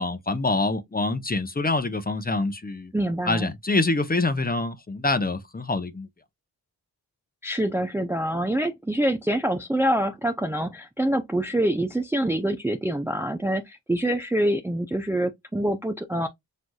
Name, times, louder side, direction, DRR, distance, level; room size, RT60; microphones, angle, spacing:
voice 1, 0.0-2.9 3.3-6.1, left 2 dB, 25° left, 0.9 m, -25 dB
voice 2, 2.9-3.5 7.4-16.3, right 1 dB, 5° right, 0.5 m, -25 dB
6.3 x 2.5 x 2.3 m
cardioid pair, 60°, 39 cm